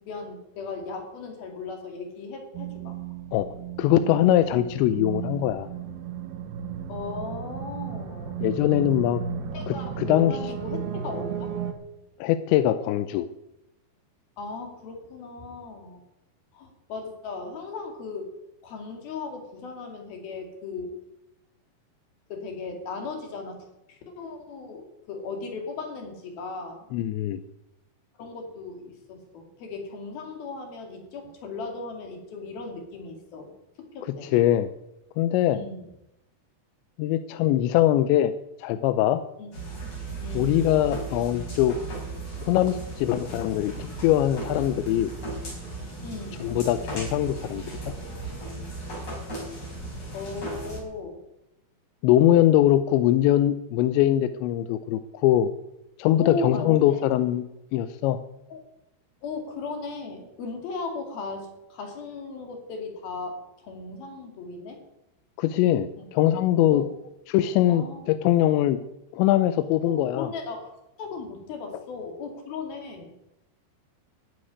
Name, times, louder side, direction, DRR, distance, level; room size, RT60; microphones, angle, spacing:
voice 1, 0.0-3.0 6.9-8.4 9.5-11.6 14.4-16.0 16.5-18.3 18.6-21.0 22.3-26.8 28.2-33.5 33.8-34.3 35.5-35.9 39.4-39.5 40.2-40.6 46.0-46.5 50.1-51.2 56.2-57.0 58.5-58.6 59.2-64.8 66.0-66.1 66.7-66.9 67.7-68.0 69.8-70.7 71.0-73.1, left 4 dB, 60° left, 4 dB, 4.1 m, -37 dB
sound 1, 2.5-11.7, right 8 dB, 65° right, 3.0 m, -34 dB
voice 2, 3.8-5.7 8.4-9.2 9.7-10.3 12.2-13.3 26.9-27.4 34.2-34.7 35.2-35.6 37.0-38.3 38.6-39.2 40.3-41.8 42.4-43.7 44.0-45.1 46.4-47.6 52.0-55.5 56.0-57.4 57.7-58.2 65.4-66.8 67.3-68.8 69.1-70.3, left 12 dB, 85° left, 11 dB, 3.0 m, -22 dB
sound 2, 39.5-50.8, right 2 dB, 35° left, 7.1 m, -36 dB
14.5 x 9.9 x 9.9 m, 0.89 s
omnidirectional pair, 5.1 m